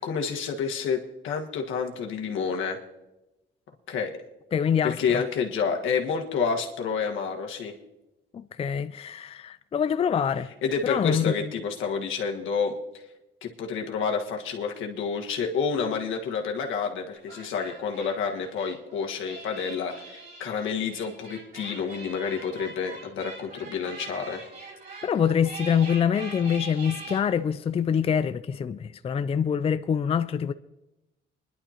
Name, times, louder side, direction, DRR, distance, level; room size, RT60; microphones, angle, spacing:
voice 1, 0.0-1.0 1.2-2.8 3.9-4.1 4.8-7.7 10.6-12.7 13.4-24.4, left 6 dB, 80° left, 1.5 m, -29 dB
voice 2, 4.5-5.2 8.3-10.5 10.8-11.5 25.0-30.5, left 7 dB, 30° left, 0.4 m, -25 dB
sound 1, 17.1-27.2, right 3 dB, 60° right, 5.1 m, -43 dB
23.0 x 11.0 x 2.9 m
cardioid pair, 90°, 20 cm